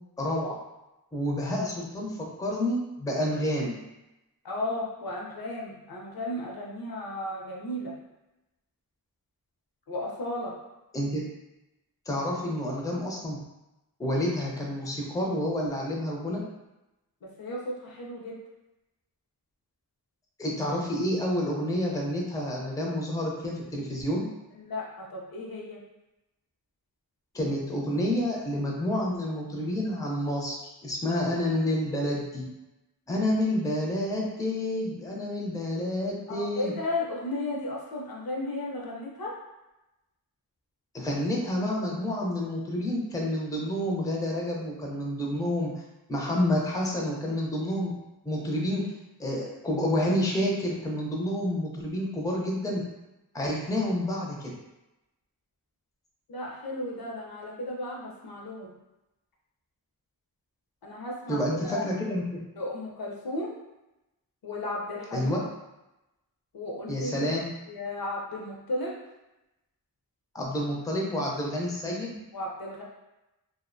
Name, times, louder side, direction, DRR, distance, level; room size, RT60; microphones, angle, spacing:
voice 1, 0.2-0.6 1.1-3.8 10.9-11.3 12.1-13.4 14.0-16.4 20.4-24.2 27.3-30.6 30.8-32.4 33.1-36.7 40.9-45.7 46.1-47.9 48.2-48.9 49.2-52.8 53.3-54.5 61.3-62.2 65.1-65.4 66.9-67.5 70.3-72.2, left 1 dB, 10° left, -2 dB, 0.4 m, -29 dB
voice 2, 4.4-7.9 9.9-10.5 17.2-18.4 24.5-25.8 36.3-39.3 56.3-58.7 60.8-61.9 62.6-63.5 64.4-65.3 66.5-67.4 67.7-68.9 72.3-72.8, left 1 dB, 70° left, -2 dB, 0.6 m, -34 dB
2.4 x 2.1 x 2.5 m, 0.96 s
wide cardioid pair, 75°, 37 cm